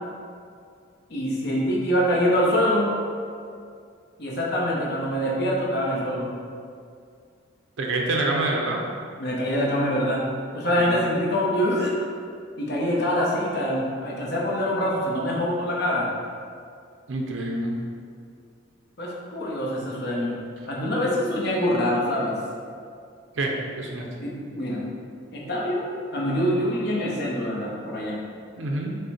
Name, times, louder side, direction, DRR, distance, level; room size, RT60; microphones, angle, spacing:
voice 1, 1.1-2.9 4.2-6.3 9.2-10.2 10.5-11.9 12.6-16.1 19.0-20.3 20.7-22.3 24.2-24.8 25.3-28.2, equal, 55° left, -4 dB, 0.8 m, -25 dB
voice 2, 7.8-8.8 10.8-10.9 17.1-17.7 23.3-24.1 28.6-29.0, right 2 dB, 75° right, 0 dB, 0.5 m, -26 dB
5.1 x 2.1 x 4.2 m, 2.3 s
head